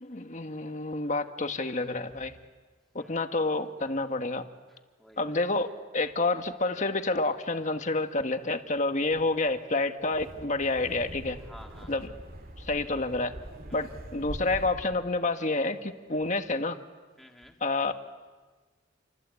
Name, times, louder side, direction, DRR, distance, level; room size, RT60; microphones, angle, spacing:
voice 1, 0.0-2.3 2.9-4.4 5.2-11.4 11.9-12.1 12.6-13.3 13.7-16.8 17.6-17.9, left 2 dB, 40° left, 7 dB, 1.5 m, -29 dB
voice 2, 3.0-3.5 4.7-5.4 11.4-11.9 13.7-14.0 17.2-17.5, equal, ahead, 1 dB, 3.0 m, -53 dB
Wind, 10.0-15.0, right 1 dB, 50° right, 2.4 m, -43 dB
29.0 x 24.5 x 8.4 m, 1.4 s
head